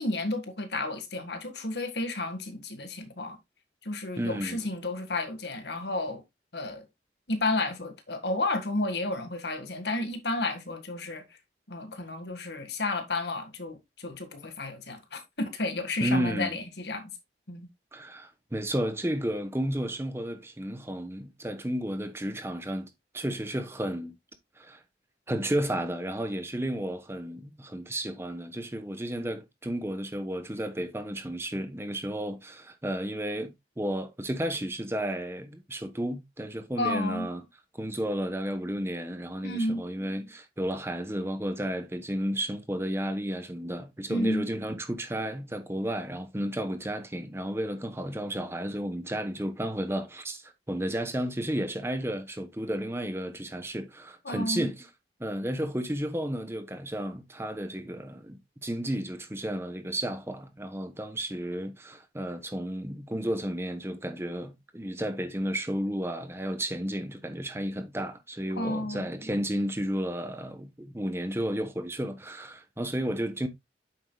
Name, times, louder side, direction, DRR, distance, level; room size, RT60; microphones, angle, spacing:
voice 1, 0.0-3.4 3.8-6.2 6.5-6.9 7.3-11.2 11.7-17.1 17.5-17.7 36.8-37.3 39.4-39.8 44.1-44.5 54.2-54.7 68.6-69.1, left 2 dB, 75° left, 1.9 m, -32 dB
voice 2, 4.1-4.6 16.0-16.6 17.9-24.2 24.6-24.8 25.3-37.4 37.7-54.9 55.2-73.5, right 1 dB, 15° right, 1.0 m, -32 dB
9.2 x 7.2 x 2.3 m
head